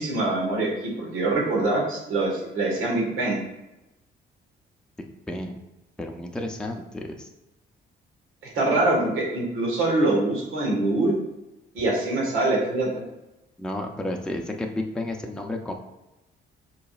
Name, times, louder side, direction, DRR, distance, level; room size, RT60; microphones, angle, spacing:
voice 1, 0.0-3.4 8.5-11.1 11.7-12.9, right 2 dB, 85° right, -2 dB, 1.7 m, -24 dB
voice 2, 6.0-7.3 13.6-15.7, left 1 dB, 5° left, 2 dB, 0.5 m, -31 dB
5.3 x 4.0 x 2.4 m, 0.96 s
cardioid pair, 90°, 20 cm